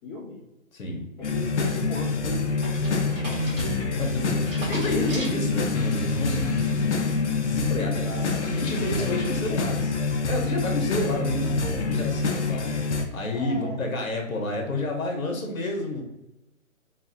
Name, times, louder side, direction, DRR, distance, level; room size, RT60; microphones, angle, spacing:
voice 1, 0.0-0.4 1.2-3.9 7.7-8.7 13.3-13.9, left 2 dB, 10° left, -10 dB, 1.1 m, -37 dB
voice 2, 0.7-1.0 3.6-3.7 4.0-7.0 7.4-16.0, left 2 dB, 75° left, 1 dB, 0.9 m, -30 dB
sound 1, 1.2-13.0, left 3 dB, 55° left, 0.5 m, -26 dB
sound 2, 1.8-6.0 6.4-6.9, right 1 dB, 40° right, 1.5 m, -39 dB
3.2 x 2.4 x 2.5 m, 0.92 s
hypercardioid pair, 175°, 41 cm